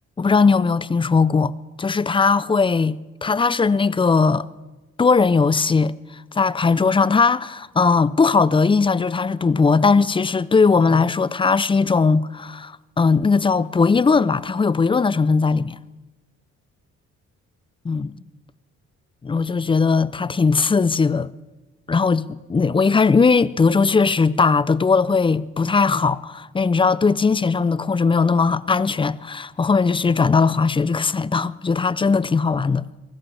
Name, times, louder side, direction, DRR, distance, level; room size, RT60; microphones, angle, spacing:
voice 1, 0.2-1.5 1.8-4.5 5.0-5.9 6.3-15.8 17.8-18.1 19.2-21.3 21.9-32.8, left 4 dB, 15° left, 0.4 m, -19 dB
23.5 x 16.5 x 3.3 m
cardioid pair, 90°, 30 cm